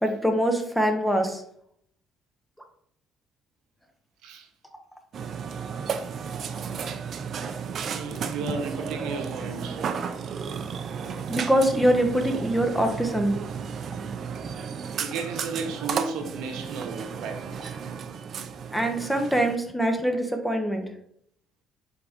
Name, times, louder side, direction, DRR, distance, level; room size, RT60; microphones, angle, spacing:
voice 1, 0.0-1.4 5.9-6.0 11.3-13.3 18.7-20.9, right 1 dB, ahead, 0.6 m, -24 dB
Burping eructation, 5.1-19.6, right 6 dB, 50° right, 0.3 m, -33 dB
voice 2, 7.9-9.8 15.0-17.5, right 4 dB, 90° right, 0.7 m, -34 dB
3.7 x 3.5 x 3.5 m
cardioid pair, 130°, 0 cm